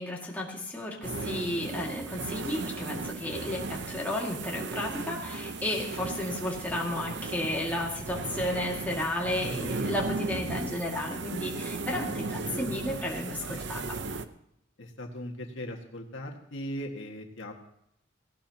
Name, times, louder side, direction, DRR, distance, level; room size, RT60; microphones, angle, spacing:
voice 1, 0.0-14.0, left 1 dB, 10° left, -3 dB, 2.1 m, -33 dB
sound 1, 1.0-14.3, right 3 dB, 60° right, 0.8 m, -36 dB
voice 2, 14.8-17.5, equal, 70° left, 1 dB, 1.8 m, -38 dB
18.0 x 16.5 x 2.9 m, 0.77 s
head